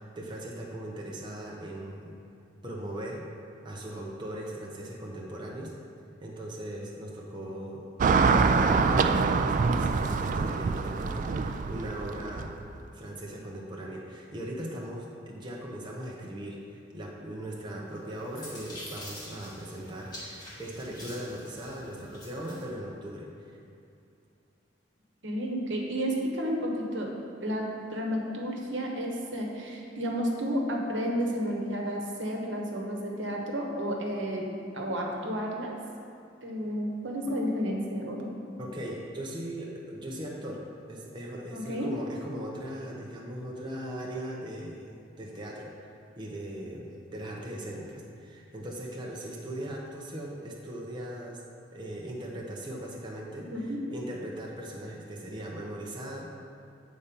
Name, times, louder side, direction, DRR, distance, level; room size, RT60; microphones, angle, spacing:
voice 1, 0.0-2.2 2.6-3.3 3.6-5.7 6.2-12.5 12.9-23.3 37.3-37.4 38.6-44.9 45.2-51.4 51.7-53.5 53.9-56.3, right 1 dB, 25° right, -3 dB, 0.8 m, -39 dB
Car passing by / Traffic noise roadway noise, 8.0-12.6, right 4 dB, 45° right, 0.3 m, -25 dB
sound 1, 17.9-22.7, left 1 dB, 20° left, 1.8 m, -46 dB
voice 2, 25.2-27.1 27.4-34.5 34.7-35.7 36.4-38.3 41.5-42.0 53.5-53.8, equal, 75° right, 0 dB, 1.1 m, -31 dB
8.3 x 4.2 x 5.2 m, 2.6 s
head